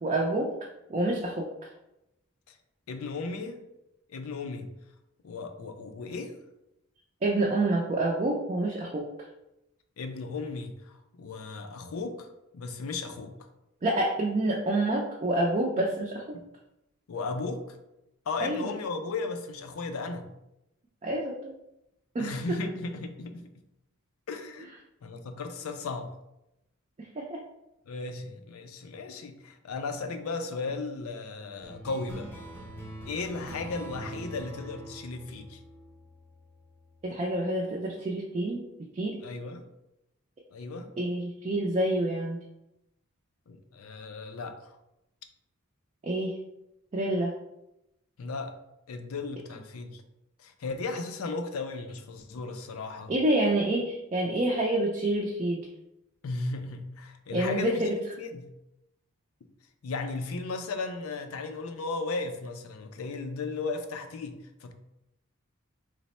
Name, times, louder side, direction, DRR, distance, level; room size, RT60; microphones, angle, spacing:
voice 1, 0.0-0.5 0.9-1.5 7.2-9.1 13.8-16.4 18.4-18.7 21.0-21.6 22.1-22.4 27.0-27.4 37.0-39.2 41.0-42.4 46.0-46.4 46.9-47.3 53.1-55.7 57.3-57.9, right 1 dB, 30° right, -1 dB, 0.4 m, -28 dB
voice 2, 2.9-3.6 4.1-4.7 5.2-6.4 10.0-12.3 12.5-13.3 15.8-15.9 16.3-16.5 17.1-17.8 18.3-20.3 22.2-23.5 24.3-24.7 25.0-26.1 27.9-32.3 33.0-35.6 39.2-39.7 40.5-40.9 43.5-44.8 48.2-48.6 48.9-50.0 50.4-53.1 56.2-58.5 59.8-64.7, left 3 dB, 85° left, 7 dB, 0.4 m, -35 dB
sound 1, 31.6-36.5, right 1 dB, 10° left, 0.6 m, -43 dB
3.2 x 2.0 x 4.1 m, 0.89 s
head